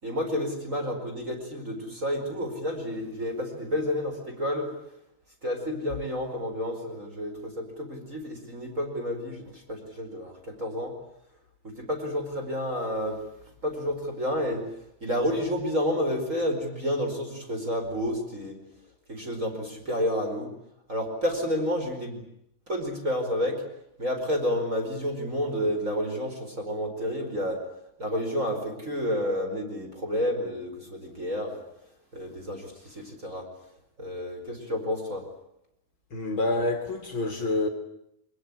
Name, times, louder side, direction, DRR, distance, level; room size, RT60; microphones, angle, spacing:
voice 1, 0.0-4.7 5.4-10.9 11.6-13.2 13.6-14.6 15.0-18.6 19.1-20.5 20.9-22.2 22.7-23.6 24.0-27.6 28.0-31.6 32.1-33.5 34.0-35.2, equal, 20° right, 5.0 m, -30 dB
voice 2, 36.1-37.7, left 2 dB, 40° left, 2.1 m, -27 dB
23.0 x 21.5 x 9.8 m
omnidirectional pair, 4.5 m